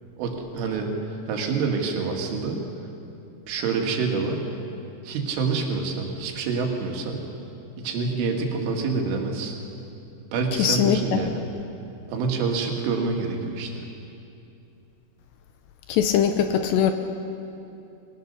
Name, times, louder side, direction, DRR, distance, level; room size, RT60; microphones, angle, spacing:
voice 1, 0.2-1.0 1.3-2.6 3.5-4.4 5.0-7.3 7.8-9.5 10.3-11.4 12.1-13.9, right 4 dB, 85° right, 2 dB, 4.4 m, -27 dB
voice 2, 10.6-11.2 15.9-16.9, left 9 dB, 80° left, 7 dB, 2.7 m, -21 dB
23.0 x 17.5 x 6.6 m, 2.8 s
omnidirectional pair, 5.5 m